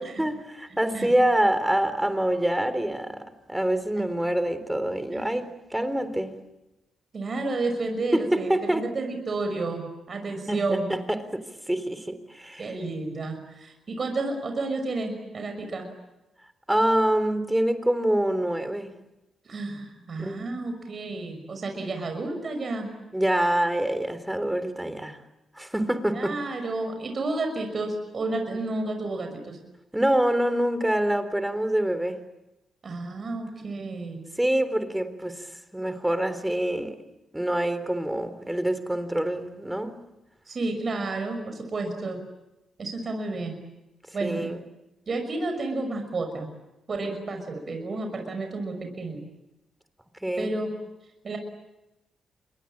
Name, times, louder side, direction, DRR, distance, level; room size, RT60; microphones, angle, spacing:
voice 1, 0.2-3.2 3.5-6.3 8.1-8.8 10.5-12.7 16.7-18.9 20.2-20.5 23.1-25.2 25.6-26.4 29.9-32.2 34.4-35.5 35.7-37.0 37.3-39.9 44.2-44.6 50.2-50.5, right 1 dB, 10° right, 11 dB, 3.8 m, -26 dB
voice 2, 7.1-10.9 12.6-15.9 19.5-22.9 26.1-29.6 32.8-34.2 40.5-42.2 42.8-43.6 44.1-44.5 45.1-46.5 46.9-49.2 50.4-50.7 51.2-51.4, right 2 dB, 50° right, 5 dB, 5.9 m, -31 dB
28.0 x 22.5 x 8.8 m, 0.95 s
hypercardioid pair, 45°, 0 cm